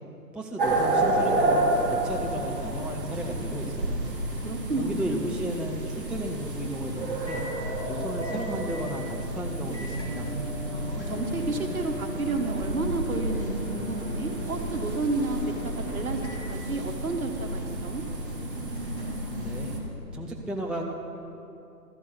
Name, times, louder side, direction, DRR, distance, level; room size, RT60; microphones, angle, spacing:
voice 1, 0.3-4.0 4.8-7.4 7.9-10.3 19.4-19.8 20.1-20.8, right 1 dB, ahead, -1 dB, 0.4 m, -34 dB
sound 1, 0.6-19.8, right 1 dB, 30° right, 1.4 m, -30 dB
voice 2, 4.4-5.3 10.7-16.2 16.5-18.0, right 2 dB, 55° right, 4 dB, 1.3 m, -31 dB
Microwave oven, 4.6-20.3, left 1 dB, 45° left, 3.0 m, -45 dB
12.5 x 6.0 x 7.0 m, 2.8 s
hypercardioid pair, 180°, 50 cm